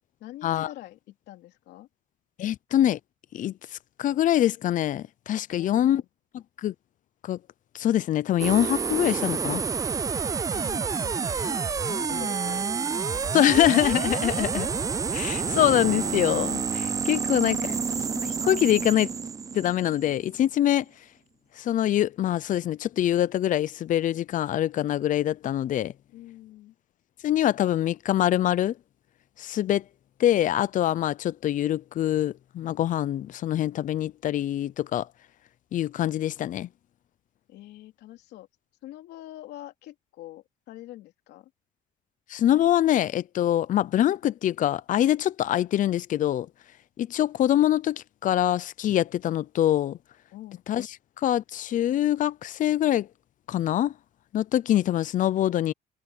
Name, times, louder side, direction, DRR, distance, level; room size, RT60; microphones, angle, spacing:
voice 1, 0.2-1.9 5.6-6.1 10.5-12.7 13.4-13.6 17.1-17.9 26.1-26.7 37.5-38.5 38.8-41.5 50.3-50.6, left 15 dB, 80° left, 3.4 m, -45 dB
voice 2, 2.4-3.0 3.3-3.5 4.0-6.0 6.6-6.7 7.2-7.4 7.7-9.6 12.1-12.2 13.3-14.7 15.1-17.7 18.2-19.1 19.5-20.8 21.6-25.9 27.2-28.7 29.4-29.8 30.2-35.1 35.7-36.7 42.3-46.5 47.0-50.0 50.7-50.9 51.2-53.1 53.5-53.9 54.3-55.7, left 12 dB, 50° left, 0.6 m, -24 dB
sound 1, 8.4-20.4, right 5 dB, 20° right, 0.3 m, -29 dB
cardioid pair, 110°, 17 cm